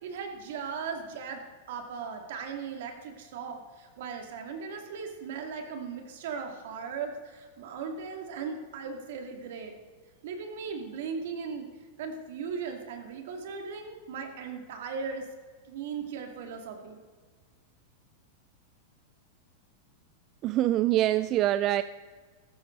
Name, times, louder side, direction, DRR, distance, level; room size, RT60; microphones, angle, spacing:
voice 1, 0.0-1.4 1.7-9.7 10.2-11.7 12.0-15.3 15.7-17.0, right 5 dB, 70° right, 4 dB, 2.6 m, -38 dB
voice 2, 20.4-21.8, right 14 dB, 40° right, 14 dB, 0.3 m, -24 dB
15.0 x 13.5 x 4.0 m, 1.5 s
hypercardioid pair, 130°, 0 cm